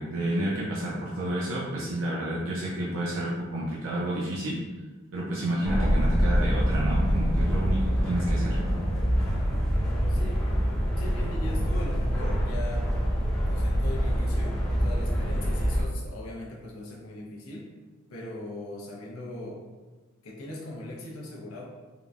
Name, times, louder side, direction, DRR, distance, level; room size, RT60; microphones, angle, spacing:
voice 1, 0.0-4.6 5.1-8.6, right 1 dB, 65° right, -5 dB, 0.5 m, -30 dB
sound 1, 5.6-15.8, equal, 5° left, 0.4 m, -25 dB
voice 2, 10.0-10.5 11.0-12.9 13.5-17.7 18.1-19.6 20.2-21.7, left 2 dB, 75° left, -3 dB, 0.6 m, -40 dB
3.7 x 2.1 x 2.3 m, 1.3 s
head